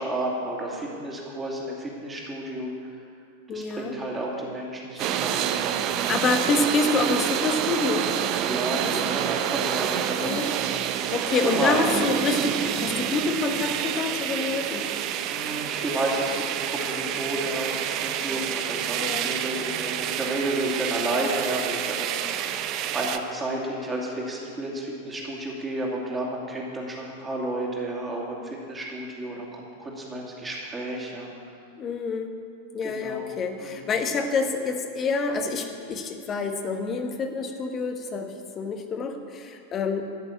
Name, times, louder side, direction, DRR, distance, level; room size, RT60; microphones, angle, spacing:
voice 1, 0.0-3.0 3.5-5.8 8.4-10.3 11.2-12.1 15.2-22.1 22.7-31.3 32.8-33.3 33.6-33.9, right 1 dB, 15° right, -2 dB, 2.6 m, -31 dB
voice 2, 3.5-3.9 5.0-5.1 5.9-8.1 8.8-9.1 10.2-10.5 11.1-14.8 19.0-19.2 31.8-32.3 32.7-40.0, left 4 dB, 25° left, 5 dB, 1.4 m, -27 dB
sound 1, 5.0-23.2, right 10 dB, 40° right, 0.7 m, -28 dB
13.5 x 6.8 x 8.8 m, 2.5 s
figure-of-eight pair, 90°, 0 cm